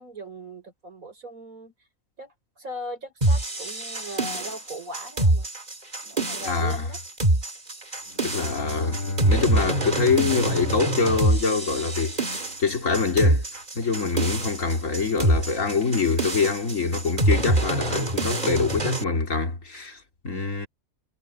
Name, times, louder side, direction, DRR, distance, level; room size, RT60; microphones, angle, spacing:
voice 1, 0.0-1.7 2.2-5.5 6.0-7.0, equal, 70° right, 5.6 m, -39 dB
sound 1, 3.2-19.0, right 2 dB, 30° right, 2.2 m, -25 dB
voice 2, 6.5-6.8 8.2-20.0 20.2-20.7, left 4 dB, 65° left, 2.8 m, -25 dB
Bowed string instrument, 8.1-12.6, left 3 dB, 80° left, 2.6 m, -34 dB
omnidirectional pair, 1.5 m